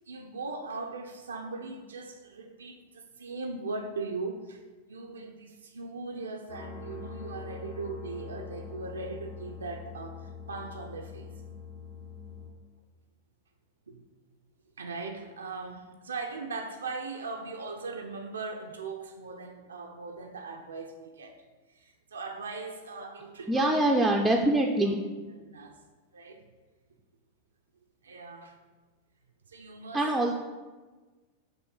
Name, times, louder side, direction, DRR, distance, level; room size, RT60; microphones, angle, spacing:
voice 1, 0.1-4.6 4.9-11.3 13.9-14.0 14.8-21.4 21.7-23.8 25.4-25.8 26.1-26.4 28.0-28.5 29.5-30.1, right 3 dB, 70° right, 2 dB, 0.4 m, -39 dB
sound 1, 6.5-12.5, left 5 dB, 50° left, 1.1 m, -43 dB
voice 2, 23.5-25.0 29.9-30.3, right 1 dB, 5° right, 0 dB, 0.4 m, -24 dB
6.0 x 3.1 x 5.2 m, 1.3 s
figure-of-eight pair, 90°, 0 cm